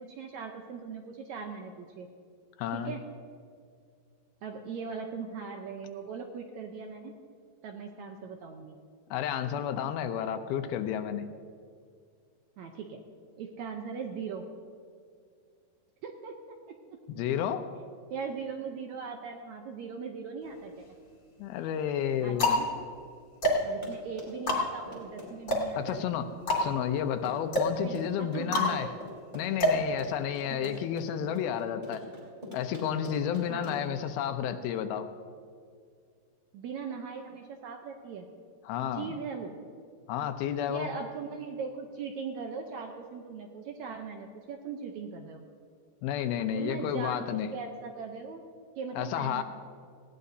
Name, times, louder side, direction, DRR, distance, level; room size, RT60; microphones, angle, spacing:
voice 1, 0.0-2.1 2.7-3.0 4.4-7.1 7.6-8.8 12.6-13.0 13.4-14.5 16.0-16.4 18.1-20.9 22.2-22.7 23.6-26.0 27.8-29.0 30.5-30.7 33.5-33.9 36.5-38.3 38.9-39.6 40.7-45.4 46.5-48.4 48.8-49.4, right 5 dB, 80° right, 3 dB, 1.6 m, -39 dB
voice 2, 2.6-2.9 9.1-11.3 17.1-17.6 21.4-22.6 25.8-26.3 26.6-28.9 29.3-32.0 32.5-35.1 38.7-39.1 40.1-40.9 46.0-47.5 49.0-49.4, left 9 dB, 85° left, 8 dB, 2.6 m, -31 dB
sound 1, 20.4-21.2 21.8-30.6, left 1 dB, 35° left, 2.6 m, -30 dB
Run, 23.6-34.0, left 1 dB, 10° right, 3.7 m, -45 dB
19.5 x 16.5 x 2.7 m, 2.2 s
omnidirectional pair, 4.3 m